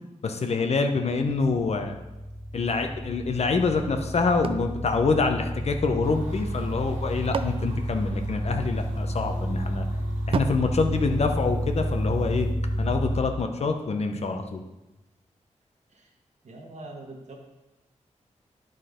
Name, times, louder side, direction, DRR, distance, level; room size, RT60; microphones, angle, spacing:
voice 1, 0.2-2.0 2.5-9.9 10.3-12.5 12.8-14.6, left 4 dB, 60° left, 5 dB, 0.8 m, -26 dB
sound 1, 1.1-13.2, equal, 20° right, 1.5 m, -30 dB
sound 2, 4.4-6.0 6.8-8.8 10.3-11.9, right 5 dB, 45° right, 0.4 m, -36 dB
sound 3, 6.0-12.5, right 2 dB, 90° right, 1.3 m, -47 dB
voice 2, 16.4-17.4, right 2 dB, 70° right, 0 dB, 1.5 m, -43 dB
10.0 x 4.0 x 5.1 m, 1.0 s
wide cardioid pair, 115°, 13 cm